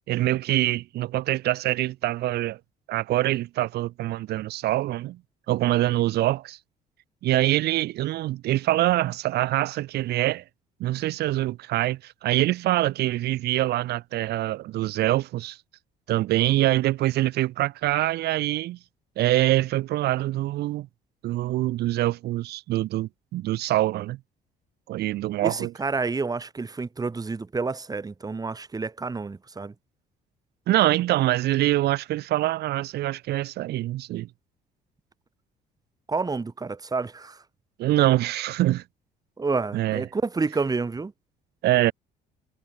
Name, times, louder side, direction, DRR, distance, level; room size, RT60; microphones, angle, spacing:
voice 1, 0.1-2.6 2.9-5.2 5.5-6.6 7.2-10.4 10.8-15.6 16.1-18.8 19.2-20.9 21.2-24.2 24.9-25.7 30.7-34.3 37.8-38.8 39.7-40.1 41.6-41.9, right 15 dB, 75° right, 1.9 m, -24 dB
voice 2, 25.4-29.7 36.1-37.4 39.4-41.1, right 4 dB, 20° right, 6.4 m, -29 dB
cardioid pair, 110°, 17 cm